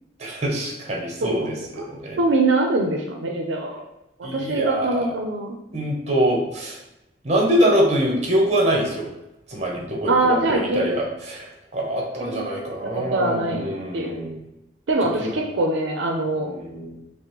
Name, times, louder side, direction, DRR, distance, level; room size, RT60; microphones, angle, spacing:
voice 1, 0.2-2.2 4.2-5.1 5.7-6.8 7.2-9.1 9.5-14.4 15.2-15.3 16.4-17.0, right 1 dB, 35° right, -1 dB, 0.8 m, -24 dB
voice 2, 1.2-1.8 2.2-3.8 4.2-5.6 10.1-10.9 12.2-14.2 14.9-16.5, right 2 dB, 80° right, 2 dB, 0.5 m, -23 dB
5.7 x 2.0 x 3.1 m, 0.90 s
head